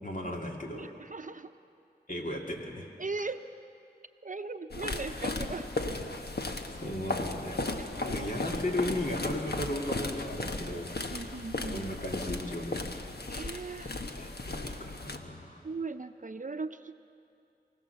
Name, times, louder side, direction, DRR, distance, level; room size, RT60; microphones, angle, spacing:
voice 1, 0.0-0.9 2.1-2.9 6.7-7.7 8.1-10.9 11.5-12.9 14.2-15.6, left 1 dB, 50° left, -1 dB, 2.8 m, -36 dB
voice 2, 0.7-1.5 3.0-3.4 4.2-5.7 8.0-8.3 11.1-11.9 13.3-13.9 15.6-16.9, right 3 dB, 50° right, 9 dB, 0.7 m, -38 dB
sound 1, 4.7-15.2, left 2 dB, 70° left, 1.3 m, -36 dB
24.0 x 17.0 x 7.0 m, 2.5 s
wide cardioid pair, 50°, 17 cm